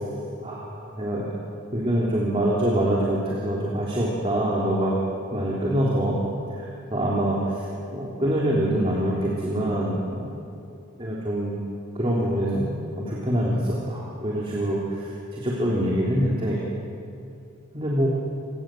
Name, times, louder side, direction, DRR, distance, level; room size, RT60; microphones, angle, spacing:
voice 1, 0.4-1.3 1.7-4.9 5.3-6.2 6.5-10.3 11.0-11.5 11.9-12.6 13.0-16.6 17.7-18.1, right 1 dB, 25° right, -5 dB, 3.3 m, -25 dB
28.0 x 19.0 x 7.8 m, 2.7 s
head